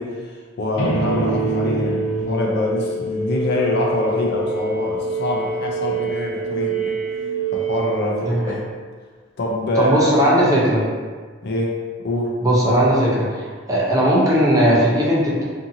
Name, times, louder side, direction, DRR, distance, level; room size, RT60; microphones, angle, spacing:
voice 1, 0.0-7.0 7.5-8.6 9.4-10.1 11.4-11.8 12.0-12.3, left 1 dB, 55° left, -2 dB, 0.5 m, -25 dB
sound 1, 0.8-8.7, right 3 dB, 90° left, 0.8 m, -25 dB
voice 2, 8.2-8.6 9.7-10.8 12.4-15.4, equal, 15° right, -6 dB, 0.6 m, -18 dB
2.7 x 2.6 x 2.6 m, 1.5 s
head